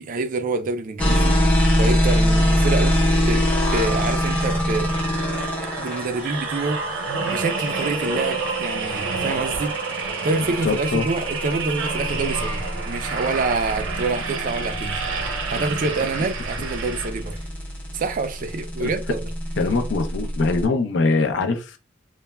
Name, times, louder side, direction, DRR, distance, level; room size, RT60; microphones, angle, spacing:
voice 1, 0.0-1.4 1.8-4.9 5.8-9.7 10.2-15.0 15.2-17.4 17.9-19.2, right 3 dB, 40° right, 0.3 m, -27 dB
sound 1, 1.0-20.6, equal, 10° left, 0.7 m, -24 dB
sound 2, 3.1-5.6 8.0-9.8 11.8-15.5, right 1 dB, 40° left, 0.9 m, -37 dB
sound 3, 3.9-17.5 18.0-18.2, right 4 dB, 90° right, 0.6 m, -29 dB
voice 2, 10.6-11.1 18.8-18.9 19.6-21.8, left 3 dB, 60° left, 0.5 m, -22 dB
3.1 x 2.1 x 2.2 m
head